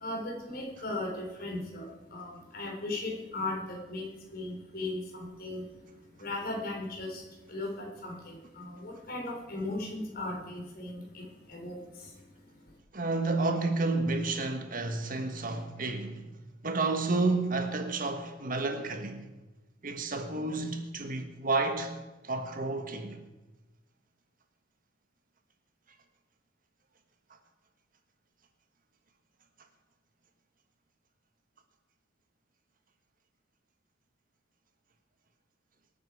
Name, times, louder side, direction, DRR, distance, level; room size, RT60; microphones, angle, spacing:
voice 1, 0.0-1.8 2.1-4.1 4.3-5.6 6.2-7.2 7.5-11.2 11.5-11.8, left 2 dB, 55° left, 3.7 m, -37 dB
voice 2, 12.9-16.3 16.6-19.2 19.8-22.0 22.2-23.2, right 3 dB, 50° right, 1.5 m, -30 dB
24.5 x 8.7 x 4.9 m
head